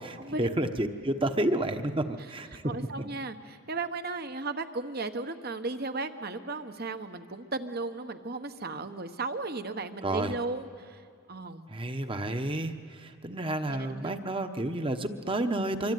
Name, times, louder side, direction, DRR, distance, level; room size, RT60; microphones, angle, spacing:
voice 1, 0.0-2.6 10.0-10.3 11.7-15.9, right 1 dB, 25° right, 8 dB, 1.1 m, -30 dB
voice 2, 2.6-11.0 11.3-11.7 13.7-14.2, right 3 dB, 50° right, 9 dB, 1.2 m, -35 dB
25.0 x 24.0 x 9.4 m, 2.2 s
head